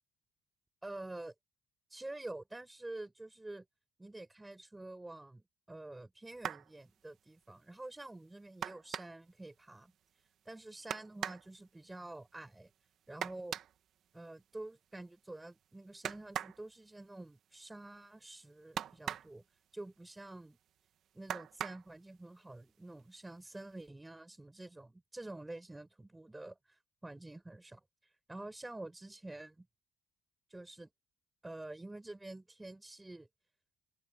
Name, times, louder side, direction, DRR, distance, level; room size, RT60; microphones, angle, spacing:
voice 1, 0.8-1.3 1.9-3.6 4.0-9.9 10.4-12.7 13.1-13.6 14.1-19.4 19.7-20.6 21.1-27.8 28.3-29.7 30.5-30.9 31.4-33.3, right 2 dB, 10° right, 6.1 m, -48 dB
sound 1, 6.3-6.7 8.6-9.3 10.9-11.5 13.2-13.8 16.0-16.6 18.8-19.4 21.3-21.9 23.0-23.1 23.5-23.8, right 10 dB, 60° right, 1.9 m, -40 dB
cardioid pair, 130°, 0 cm